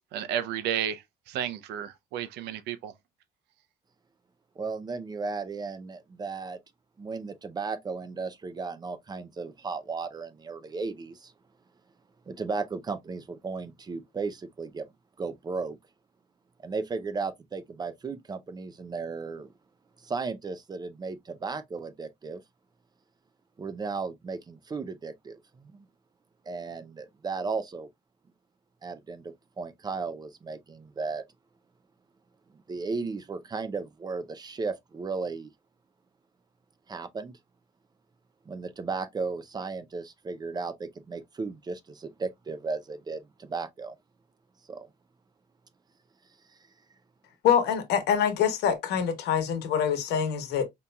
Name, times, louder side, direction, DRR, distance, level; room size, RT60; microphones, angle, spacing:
voice 1, 0.1-1.0 1.3-2.9, right 9 dB, 80° right, 0.6 m, -32 dB
voice 2, 4.6-6.6 7.0-11.3 12.3-14.9 15.2-15.8 16.6-19.5 20.0-22.4 23.6-25.8 26.5-27.9 28.8-31.2 32.7-35.5 36.9-37.3 38.5-44.0 44.7-44.9, right 4 dB, 25° right, 0.5 m, -35 dB
voice 3, 47.4-50.6, left 8 dB, 80° left, 1.1 m, -25 dB
5.1 x 2.9 x 2.2 m
cardioid pair, 110°, 17 cm